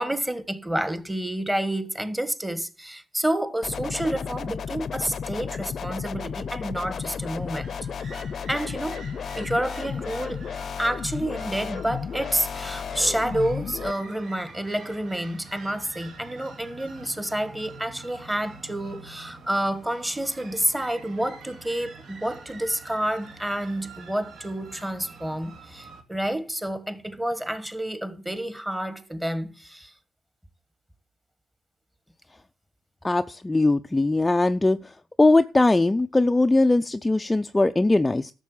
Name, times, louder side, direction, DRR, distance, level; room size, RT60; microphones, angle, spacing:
voice 1, 0.0-7.8 8.5-9.1 9.3-10.4 10.8-29.9, right 1 dB, 10° right, 1.4 m, -29 dB
sound 1, 3.6-13.9, left 6 dB, 50° left, 0.7 m, -33 dB
sound 2, 6.8-26.0, right 3 dB, 65° right, 2.5 m, -46 dB
voice 2, 33.0-34.8 35.2-38.3, left 2 dB, 15° left, 0.5 m, -20 dB
12.5 x 6.8 x 7.1 m
cardioid pair, 90°, 0 cm